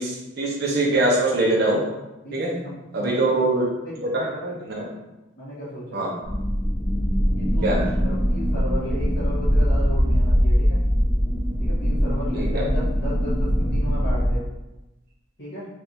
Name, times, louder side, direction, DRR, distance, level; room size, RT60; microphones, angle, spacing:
voice 1, 0.0-1.8 2.3-2.5 2.9-3.7 4.1-4.3 4.7-4.8 5.9-6.1 7.6-7.8 12.3-12.7, right 2 dB, 55° right, -4 dB, 0.9 m, -22 dB
voice 2, 2.6-3.4 3.8-4.6 5.4-6.1 7.3-10.8 11.6-14.4 15.4-15.7, equal, 60° left, -10 dB, 1.2 m, -34 dB
sound 1, 6.2-14.4, equal, 5° left, 0.7 m, -22 dB
3.4 x 2.6 x 4.5 m, 1.0 s
head